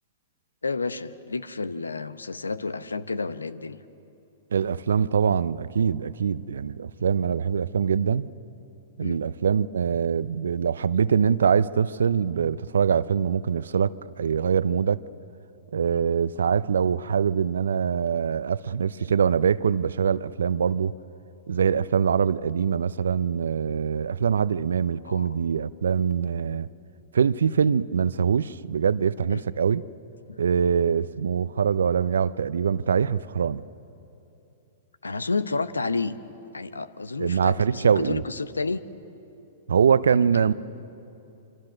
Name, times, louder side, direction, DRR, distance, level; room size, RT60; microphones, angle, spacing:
voice 1, 0.6-3.8 9.0-9.2 15.9-16.0 21.7-21.8 25.1-25.3 29.3-29.4 30.3-30.4 35.0-36.2 36.5-38.8 40.1-40.5, left 3 dB, 85° left, 0.9 m, -30 dB
voice 2, 4.5-8.3 9.0-13.9 14.2-15.0 15.7-20.9 21.5-26.7 27.1-29.8 30.4-33.6 37.2-38.2 39.7-40.5, right 7 dB, 75° right, 0.6 m, -23 dB
27.0 x 24.5 x 6.4 m
hypercardioid pair, 110°, 0 cm